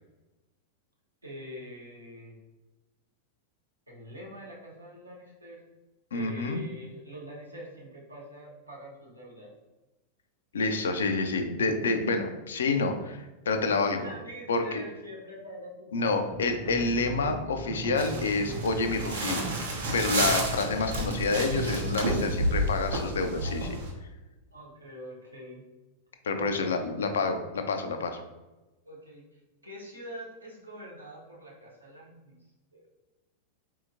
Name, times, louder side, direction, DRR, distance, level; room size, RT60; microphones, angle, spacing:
voice 1, 1.2-2.4 3.9-5.6 6.1-9.5 13.8-16.3 23.4-23.6 24.5-25.6 26.3-26.7 28.8-32.4 32.7-32.9, equal, 85° right, -4 dB, 1.0 m, -44 dB
voice 2, 6.1-6.6 10.5-14.0 14.5-14.8 15.9-19.5 19.9-23.7 26.2-28.2, left 3 dB, 65° left, 7 dB, 0.4 m, -28 dB
sound 1, 16.3-23.6, right 2 dB, 20° right, 0.6 m, -39 dB
sound 2, 18.0-23.9, right 1 dB, 60° right, 0.7 m, -31 dB
4.1 x 2.8 x 2.6 m, 1.1 s
figure-of-eight pair, 90°, 0 cm